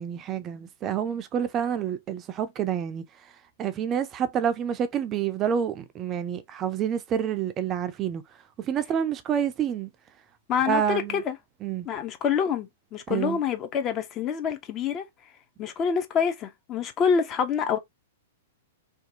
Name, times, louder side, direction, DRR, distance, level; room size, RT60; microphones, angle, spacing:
voice 1, 0.0-3.3 3.6-8.2 8.6-9.9 10.7-11.2 11.6-11.9 13.1-13.4, right 8 dB, 30° right, 0.3 m, -28 dB
voice 2, 10.5-11.4 11.9-15.1 15.6-17.8, left 7 dB, 30° left, 0.5 m, -26 dB
2.6 x 2.2 x 2.6 m
figure-of-eight pair, 105°, 0 cm